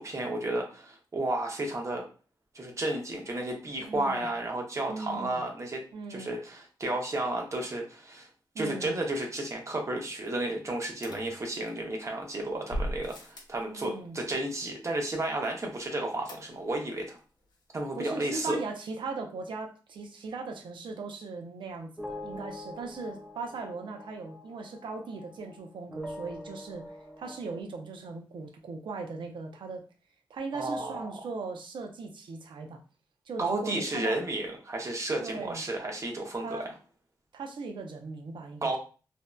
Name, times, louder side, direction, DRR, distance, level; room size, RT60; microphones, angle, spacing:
voice 1, 0.0-2.1 2.5-8.3 8.6-17.2 17.7-18.6 30.5-31.2 33.4-36.7 38.6-38.8, right 2 dB, 40° right, 1 dB, 0.6 m, -32 dB
voice 2, 3.8-4.3 4.9-5.4 5.9-6.3 8.5-8.9 13.6-14.2 17.9-26.9 27.2-29.8 30.3-32.8 33.3-34.2 35.2-35.6 36.4-36.7 37.3-38.8, right 3 dB, 90° right, 2 dB, 0.5 m, -38 dB
sound 1, 11.0-12.0 12.7-13.6 16.3-16.9 17.2-17.3 17.5-17.6, equal, 65° left, 0.5 m, -38 dB
sound 2, 22.0-25.6 25.9-27.6, left 1 dB, ahead, 0.3 m, -44 dB
2.6 x 2.1 x 2.2 m, 0.36 s
wide cardioid pair, 100°, 8 cm